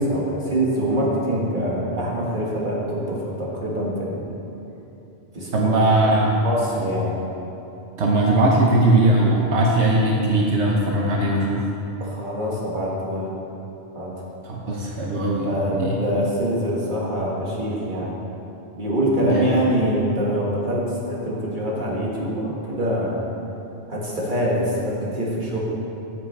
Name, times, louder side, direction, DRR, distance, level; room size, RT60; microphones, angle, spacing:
voice 1, 0.0-4.2 5.3-5.7 6.4-7.2 12.0-13.3 14.0-14.2 15.5-18.1 18.7-23.2 23.9-25.6, equal, 45° right, -5 dB, 1.9 m, -24 dB
voice 2, 5.5-6.4 8.0-11.6 14.4-15.9 19.2-19.8, right 2 dB, 85° right, -2 dB, 1.3 m, -19 dB
13.5 x 7.3 x 3.3 m, 2.8 s
omnidirectional pair, 1.1 m